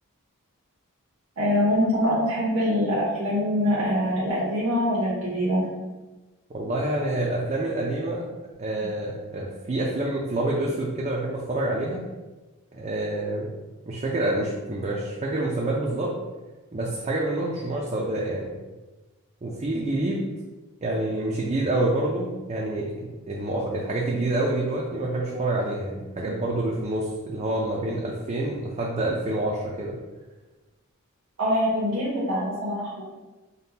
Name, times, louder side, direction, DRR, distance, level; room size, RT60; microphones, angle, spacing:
voice 1, 1.4-5.6 31.4-33.0, equal, 85° right, -7 dB, 0.9 m, -24 dB
voice 2, 6.5-8.3 8.6-12.0 12.7-13.5 13.9-16.1 16.7-18.5 19.4-20.3 20.8-30.0, right 1 dB, 30° right, -4 dB, 0.4 m, -27 dB
5.2 x 2.2 x 2.8 m, 1.2 s
head